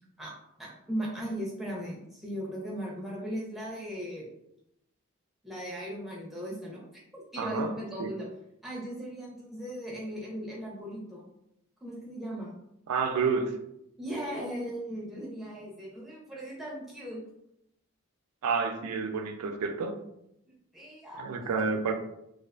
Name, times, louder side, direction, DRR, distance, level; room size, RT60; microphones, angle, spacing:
voice 1, 0.2-4.3 5.4-6.8 7.1-8.3 8.6-11.3 11.8-12.5 14.0-17.2 20.5-21.5, equal, ahead, -5 dB, 0.5 m, -38 dB
voice 2, 7.4-7.7 8.0-8.1 12.9-13.5 18.4-20.0 21.2-21.9, right 5 dB, 85° right, 6 dB, 0.4 m, -29 dB
2.4 x 2.3 x 2.2 m, 0.81 s
head